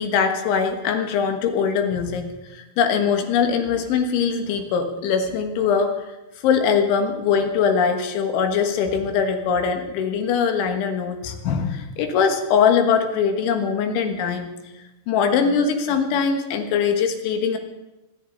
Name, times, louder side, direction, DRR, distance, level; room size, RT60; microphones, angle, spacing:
voice 1, 0.0-2.3 2.8-6.0 6.4-14.5 15.1-17.6, left 6 dB, 85° left, 6 dB, 3.8 m, -21 dB
25.5 x 11.5 x 3.9 m, 1.1 s
omnidirectional pair, 5.3 m